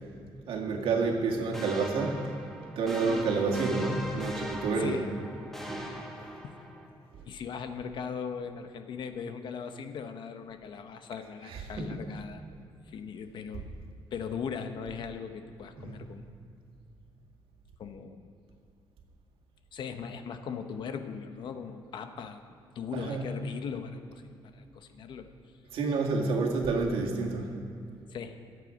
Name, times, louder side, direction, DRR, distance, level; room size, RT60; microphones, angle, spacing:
voice 1, 0.5-2.3 2.8-5.1 5.7-5.8 11.4-12.1 15.8-16.0 22.9-23.3 25.7-27.6, right 4 dB, 90° right, -1 dB, 2.1 m, -29 dB
sound 1, 1.5-6.9, equal, 5° left, 1.4 m, -40 dB
voice 2, 4.7-5.1 6.4-6.6 7.2-12.4 12.9-13.7 14.1-16.4 17.8-18.3 19.7-22.4 22.7-25.3 28.1-28.4, left 6 dB, 60° left, 8 dB, 0.9 m, -39 dB
22.0 x 8.2 x 5.2 m, 2.5 s
cardioid pair, 155°, 9 cm